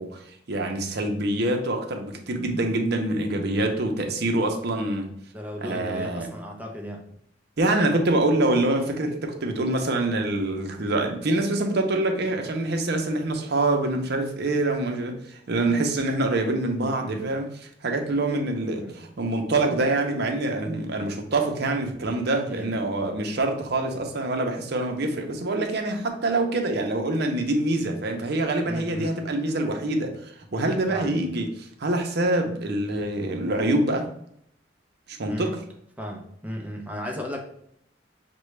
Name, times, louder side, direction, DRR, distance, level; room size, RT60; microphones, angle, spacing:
voice 1, 0.0-5.1 5.6-6.3 7.6-17.5 17.8-34.1 35.1-35.6, right 2 dB, 60° right, 3 dB, 0.7 m, -25 dB
voice 2, 5.3-7.0 16.8-17.3 18.8-18.9 22.5-22.7 28.7-29.2 30.9-31.2 35.2-35.6 36.0-37.4, equal, 10° right, 1 dB, 0.5 m, -35 dB
6.0 x 2.2 x 3.2 m, 0.70 s
head